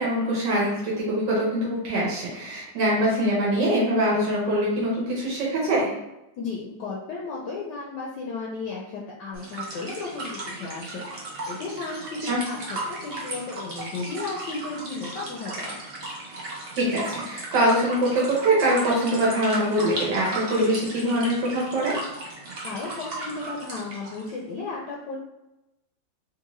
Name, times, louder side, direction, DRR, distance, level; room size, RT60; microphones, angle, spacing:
voice 1, 0.0-5.9 12.2-12.4 16.8-21.9, right 1 dB, 65° right, -5 dB, 1.4 m, -23 dB
voice 2, 6.4-15.7 22.6-25.2, left 3 dB, 70° left, -3 dB, 1.1 m, -34 dB
sound 1, 9.3-24.4, right 2 dB, 90° right, 0.5 m, -36 dB
3.7 x 2.5 x 3.0 m, 0.94 s
omnidirectional pair, 2.2 m